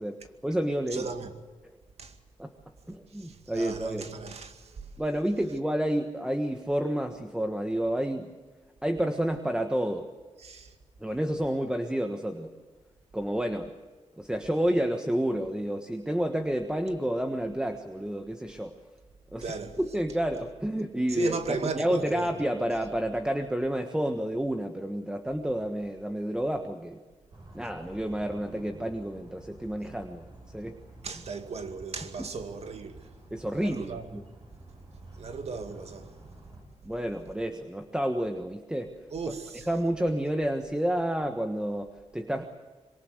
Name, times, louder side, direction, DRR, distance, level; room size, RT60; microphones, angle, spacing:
voice 1, 0.0-1.1 2.4-2.5 2.9-4.1 5.0-8.3 8.8-10.1 11.0-12.5 13.1-13.7 14.2-18.7 19.3-27.0 27.5-30.8 32.2-32.3 33.3-34.2 36.8-39.0 39.7-42.4, right 1 dB, 5° right, 1.4 m, -30 dB
voice 2, 0.9-1.3 2.0-2.2 3.1-4.9 10.4-10.8 19.4-19.8 21.2-22.3 31.0-33.1 33.5-34.1 35.1-36.1 39.1-39.7, right 5 dB, 60° right, 2.2 m, -36 dB
sound 1, 27.3-36.6, right 1 dB, 40° right, 7.7 m, -51 dB
25.5 x 23.5 x 8.1 m
wide cardioid pair, 115°, 12 cm